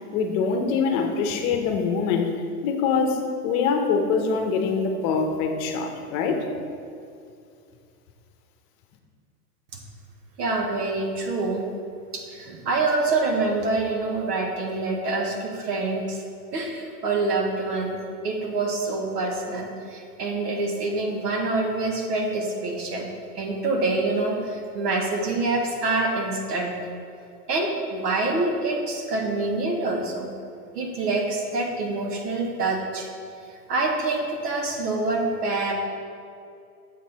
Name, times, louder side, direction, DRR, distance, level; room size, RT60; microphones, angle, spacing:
voice 1, 0.1-2.3 2.6-6.5, left 5 dB, 40° left, 4 dB, 0.9 m, -24 dB
voice 2, 10.4-11.6 12.1-16.2 16.5-18.0 18.2-23.1 23.3-26.8 27.5-30.3 30.7-33.1 33.7-35.7, right 3 dB, 85° right, 1 dB, 1.6 m, -26 dB
7.5 x 5.8 x 4.2 m, 2.4 s
hypercardioid pair, 135°, 47 cm